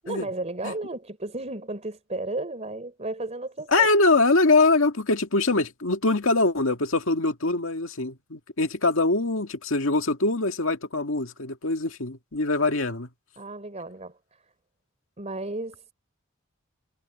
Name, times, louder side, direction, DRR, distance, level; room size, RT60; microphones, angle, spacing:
voice 1, 0.0-3.9 13.4-14.2 15.2-15.8, right 2 dB, 35° right, 3.9 m, -33 dB
voice 2, 3.7-13.1, left 3 dB, 75° left, 2.0 m, -23 dB
head